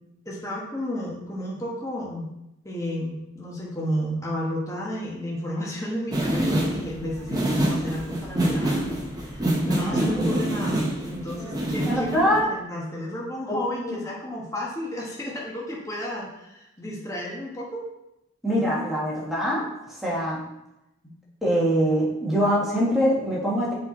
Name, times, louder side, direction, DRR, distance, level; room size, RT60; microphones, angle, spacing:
voice 1, 0.2-2.3 2.6-17.8, equal, 15° left, -4 dB, 1.2 m, -32 dB
sound 1, 6.1-12.4, right 1 dB, 20° right, 1.0 m, -26 dB
voice 2, 9.8-10.3 10.5-10.6 11.8-12.5 13.5-14.0 18.4-20.4 21.4-23.7, equal, ahead, -7 dB, 1.7 m, -24 dB
6.9 x 4.4 x 4.3 m, 0.90 s
head